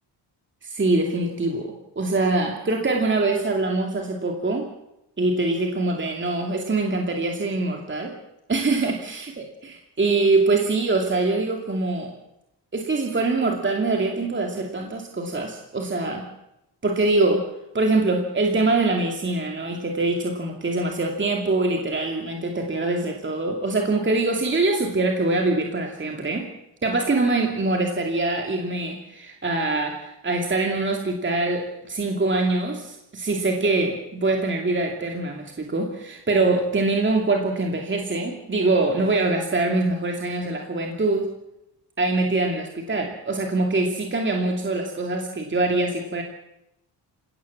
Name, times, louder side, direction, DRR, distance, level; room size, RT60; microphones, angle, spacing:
voice 1, 0.6-4.7 5.2-8.2 8.5-12.1 12.7-16.3 16.8-26.5 26.8-41.3 42.0-46.2, right 2 dB, 25° right, 2 dB, 2.6 m, -24 dB
28.0 x 17.5 x 7.2 m, 0.87 s
cardioid pair, 120°, 42 cm